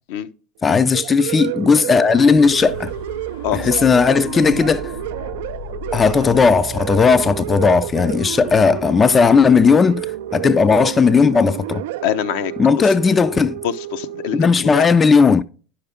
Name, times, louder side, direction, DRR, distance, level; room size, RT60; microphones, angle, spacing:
voice 1, 0.6-2.9 3.5-4.9 5.9-11.8 12.6-13.6 14.3-15.4, left 5 dB, 20° left, 0.3 m, -15 dB
sound 1, 0.7-14.4, right 14 dB, 80° right, 0.3 m, -30 dB
sound 2, 1.9-9.9 10.5-10.6, left 3 dB, 90° left, 3.5 m, -37 dB
voice 2, 3.4-3.9 12.0-12.5 12.8-12.9 13.6-14.9, left 11 dB, 70° left, 0.6 m, -24 dB
sound 3, 6.1-11.3, right 8 dB, 55° right, 0.7 m, -40 dB
10.0 x 5.8 x 3.5 m
supercardioid pair, 110°, 0 cm